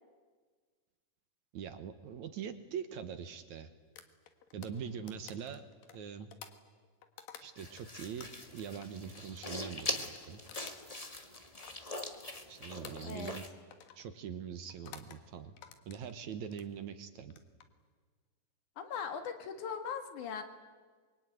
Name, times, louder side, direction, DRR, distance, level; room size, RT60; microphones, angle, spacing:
voice 1, 1.5-3.7 4.5-5.7 5.9-6.3 7.4-8.3 8.5-10.4 12.5-13.4 14.0-15.6 15.9-17.4, right 7 dB, 65° right, 9 dB, 2.3 m, -43 dB
sound 1, 4.0-7.8 8.2-12.5 12.8-13.4 13.7-14.0 14.7-15.2 15.6-16.7 17.2-17.7, left 9 dB, 85° left, 3.2 m, -53 dB
voice 2, 4.6-5.2 13.0-13.3 18.8-20.4, left 6 dB, 65° left, 7 dB, 3.1 m, -40 dB
sound 2, 7.6-13.5, left 2 dB, 40° left, 0.5 m, -42 dB
26.0 x 23.0 x 9.3 m, 1.5 s
omnidirectional pair, 4.0 m